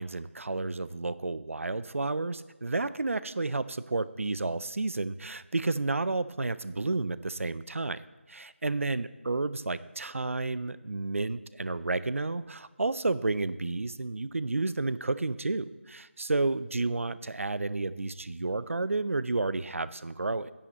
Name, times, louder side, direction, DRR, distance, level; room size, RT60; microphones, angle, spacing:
voice 1, 0.0-8.0 8.3-20.5, right 3 dB, 75° right, 16 dB, 0.4 m, -31 dB
10.0 x 6.3 x 4.1 m, 1.1 s
figure-of-eight pair, 165°, 7 cm